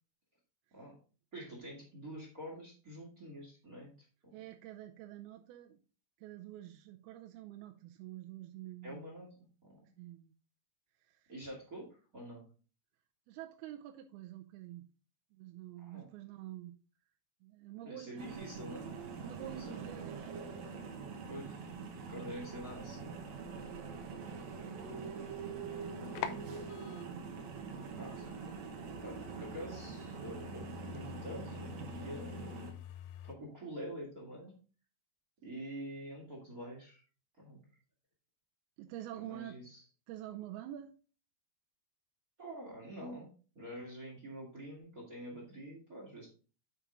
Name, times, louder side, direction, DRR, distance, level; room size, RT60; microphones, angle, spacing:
voice 1, 1.3-3.9 8.8-9.3 9.6-9.8 11.3-11.9 12.1-12.4 15.8-16.1 17.8-18.9 19.4-19.8 21.2-21.8 22.1-23.2 28.0-28.4 29.0-32.5 33.2-34.5 35.4-37.0 37.4-37.6 39.1-39.8 42.4-43.3 43.5-46.3, equal, 35° right, -1 dB, 1.6 m, -46 dB
voice 2, 4.3-5.8 6.2-9.0 10.0-10.3 11.0-11.3 13.3-14.9 15.3-16.8 17.4-18.5 19.1-20.4 21.0-21.3 22.1-22.4 25.8-26.1 27.9-28.7 38.8-39.6 40.1-41.0, right 13 dB, 85° right, 4 dB, 2.6 m, -48 dB
sound 1, 18.2-32.7, right 5 dB, 65° right, 1.9 m, -44 dB
sound 2, 25.8-33.4, left 10 dB, 80° left, 2.3 m, -48 dB
9.2 x 4.7 x 3.7 m, 0.37 s
omnidirectional pair, 4.4 m